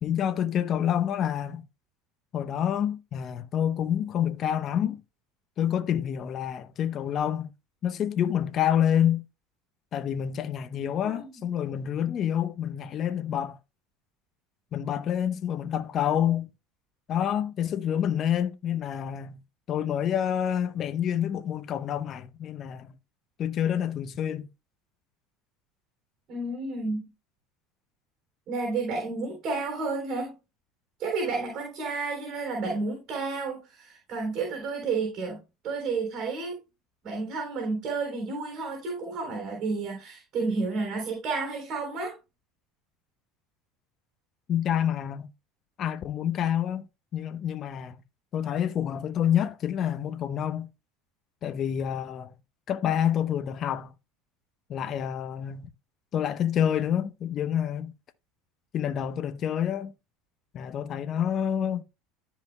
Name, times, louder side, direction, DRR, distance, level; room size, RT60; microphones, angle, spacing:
voice 1, 0.0-1.6 2.3-5.0 5.6-7.5 7.8-9.2 9.9-13.6 14.7-16.5 17.1-19.4 19.7-22.9 23.4-24.5 44.5-45.3 45.8-46.9 47.1-48.0 48.3-50.7 51.4-52.3 52.7-53.9 54.7-55.7 56.1-57.9 58.7-59.9 60.5-61.8, left 9 dB, 45° left, 0.8 m, -28 dB
voice 2, 10.7-11.3 26.3-27.1 28.5-30.3 31.0-35.4 35.6-36.6 37.0-42.2, right 3 dB, 50° right, 3.6 m, -31 dB
13.5 x 5.0 x 2.2 m
hypercardioid pair, 80°, 0 cm